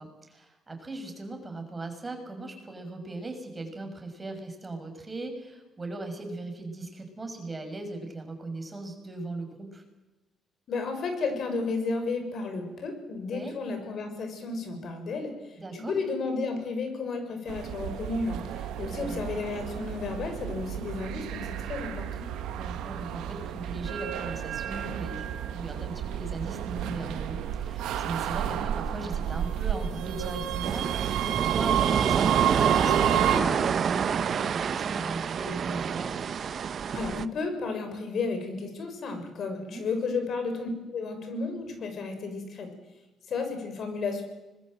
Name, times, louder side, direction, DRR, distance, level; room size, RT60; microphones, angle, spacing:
voice 1, 0.0-9.8 13.2-13.5 15.6-16.0 18.8-19.3 22.5-25.3 25.5-36.2 39.6-39.9, right 2 dB, 25° right, 5 dB, 6.5 m, -38 dB
voice 2, 10.7-22.2 36.9-42.7 43.3-44.2, left 4 dB, 60° left, 6 dB, 6.5 m, -33 dB
sound 1, 17.5-33.4, right 10 dB, 90° right, 2.1 m, -31 dB
sound 2, 30.6-37.3, right 7 dB, 55° right, 1.1 m, -28 dB
25.5 x 21.5 x 7.9 m, 1.1 s
cardioid pair, 90°, 0 cm